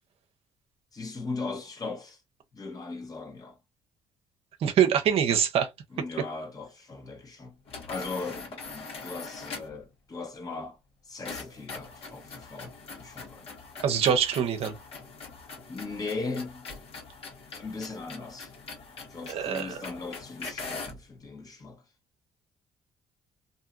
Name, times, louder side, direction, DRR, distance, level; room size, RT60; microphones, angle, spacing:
voice 1, 0.9-2.2 2.5-3.6 5.9-7.6 7.9-10.8 11.0-13.5 15.7-16.7 17.5-18.5 19.1-21.8, left 3 dB, 35° left, 1.2 m, -38 dB
voice 2, 4.6-5.7 13.8-14.8 19.3-19.8, right 8 dB, 65° right, 0.7 m, -24 dB
sound 1, 7.7-9.8 11.2-21.0, left 4 dB, 65° left, 1.4 m, -42 dB
2.8 x 2.8 x 2.4 m
supercardioid pair, 70°, 11 cm